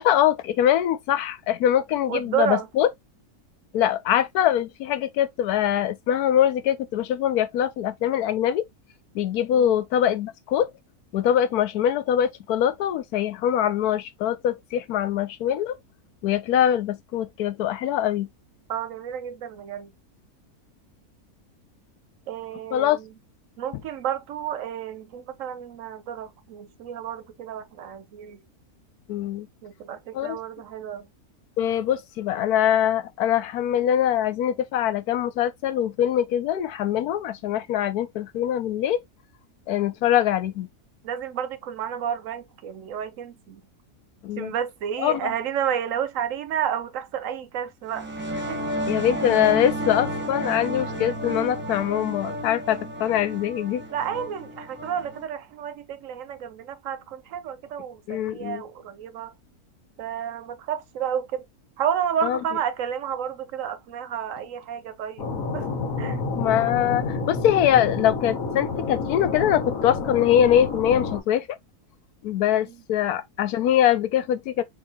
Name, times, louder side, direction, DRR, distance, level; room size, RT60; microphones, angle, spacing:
voice 1, 0.0-2.9 3.7-8.6 9.1-10.7 11.1-15.7 16.2-18.3 22.7-23.0 29.1-29.5 30.1-30.4 31.6-39.0 39.7-40.7 44.2-44.5 45.0-45.3 48.9-53.8 58.1-58.6 62.2-62.4 66.3-71.5 72.2-74.6, left 10 dB, 85° left, 1.2 m, -23 dB
voice 2, 2.1-2.7 9.5-9.8 18.7-19.9 22.3-23.1 23.6-28.4 29.6-31.1 41.0-43.6 44.4-48.1 48.5-48.7 53.9-59.3 60.0-61.5 61.8-65.7 66.0-66.2 72.5-72.8, right 9 dB, 70° right, 0.9 m, -31 dB
sound 1, 47.9-55.2, equal, 10° right, 0.7 m, -31 dB
sound 2, 65.2-71.2, left 4 dB, 65° left, 1.5 m, -29 dB
4.4 x 3.6 x 2.7 m
omnidirectional pair, 1.6 m